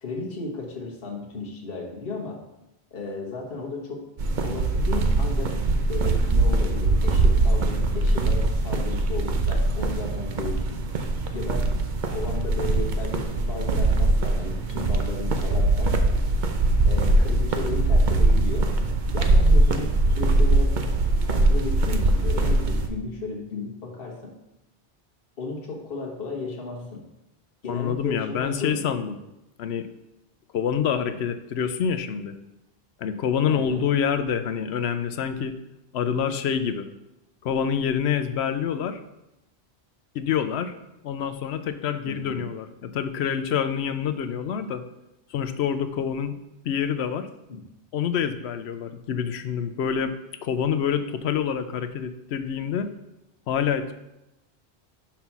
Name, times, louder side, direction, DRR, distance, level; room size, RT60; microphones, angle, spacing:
voice 1, 0.0-2.4 2.9-4.0 4.4-5.5 5.9-10.8 11.3-11.7 12.1-15.9 16.8-18.7 19.1-20.7 21.2-24.3 25.4-27.0 27.6-28.8 33.5-33.9 42.0-42.4 47.5-47.6, left 3 dB, 60° left, -2 dB, 1.5 m, -34 dB
sound 1, 4.2-22.9, right 2 dB, 50° right, 0.8 m, -22 dB
voice 2, 27.7-29.2 29.6-29.9 30.5-32.4 33.0-35.6 35.9-36.9 37.4-39.0 40.1-40.8 41.0-44.8 45.3-46.4 46.6-47.3 47.9-50.1 50.4-52.9 53.5-53.9, left 7 dB, 75° left, 10 dB, 0.9 m, -26 dB
5.9 x 5.5 x 5.9 m, 0.92 s
omnidirectional pair, 1.1 m